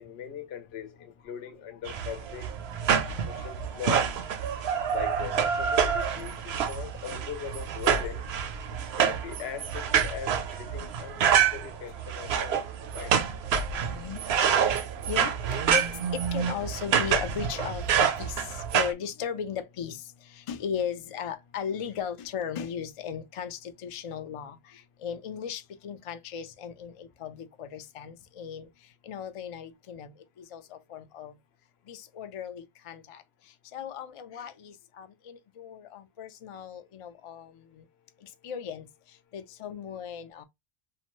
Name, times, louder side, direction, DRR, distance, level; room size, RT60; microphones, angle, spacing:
voice 1, 0.0-2.5 3.2-4.2 4.9-8.2 9.0-12.6 12.9-13.2 34.3-34.5, left 8 dB, 85° left, 0.8 m, -40 dB
sound 1, 1.9-18.9, right 8 dB, 85° right, 0.8 m, -27 dB
voice 2, 3.1-3.8 4.5-4.7 12.5-12.6 13.8-14.2 15.1-20.0 20.3-28.7 29.0-30.1 30.4-31.3 31.9-33.2 33.7-37.8 38.4-38.9 39.3-40.4, left 8 dB, 55° left, 0.3 m, -37 dB
2.8 x 2.2 x 2.9 m
omnidirectional pair, 1.0 m